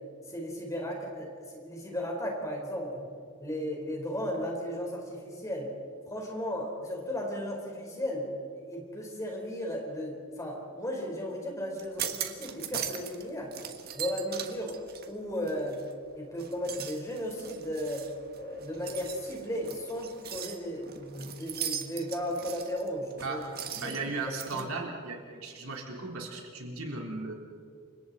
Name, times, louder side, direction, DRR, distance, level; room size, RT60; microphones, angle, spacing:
voice 1, 0.3-3.0 3.4-5.7 6.1-13.5 13.9-14.8 15.1-15.8 16.1-18.1 18.3-23.4 23.8-24.0 24.5-24.7, equal, 15° left, 0 dB, 4.2 m, -35 dB
sound 1, 11.8-13.2 13.5-16.0 16.4-24.6, right 9 dB, 45° right, 1.5 m, -39 dB
voice 2, 23.7-27.3, right 3 dB, 80° right, 0 dB, 3.9 m, -36 dB
29.0 x 25.5 x 4.2 m, 2.3 s
head